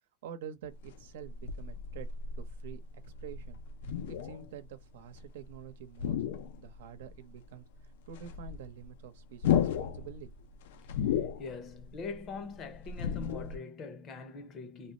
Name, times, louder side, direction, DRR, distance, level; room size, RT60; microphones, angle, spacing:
voice 1, 0.2-2.1 2.3-3.6 4.1-6.2 6.6-7.6 8.1-10.3, right 8 dB, 90° right, 0.8 m, -47 dB
sound 1, 0.7-5.6 5.9-7.2 7.4-7.5 7.8-13.6, left 8 dB, 75° left, 0.6 m, -34 dB
voice 2, 11.2-14.9, left 4 dB, 25° left, 0.7 m, -43 dB
3.7 x 2.0 x 2.5 m
supercardioid pair, 170°, 0 cm